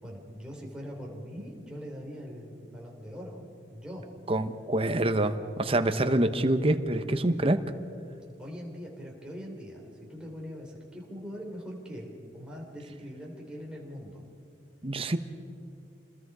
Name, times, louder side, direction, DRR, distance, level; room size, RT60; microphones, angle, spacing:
voice 1, 0.0-3.5 3.7-4.0 8.4-14.2, equal, 5° right, -2 dB, 3.7 m, -42 dB
voice 2, 4.3-7.6 14.8-15.2, right 1 dB, 30° right, 9 dB, 1.0 m, -26 dB
28.0 x 20.5 x 4.9 m, 2.6 s
head